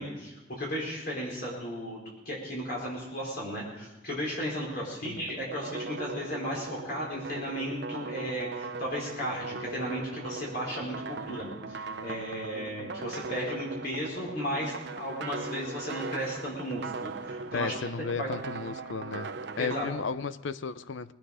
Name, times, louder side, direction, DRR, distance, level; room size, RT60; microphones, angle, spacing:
voice 1, 0.0-18.3 19.6-19.9, equal, 50° left, -4 dB, 4.5 m, -35 dB
sound 1, 5.0-19.8, right 3 dB, 60° right, 0.7 m, -39 dB
voice 2, 17.5-19.3 19.6-21.1, left 5 dB, 70° left, 15 dB, 0.6 m, -34 dB
21.5 x 9.9 x 4.9 m, 1.1 s
head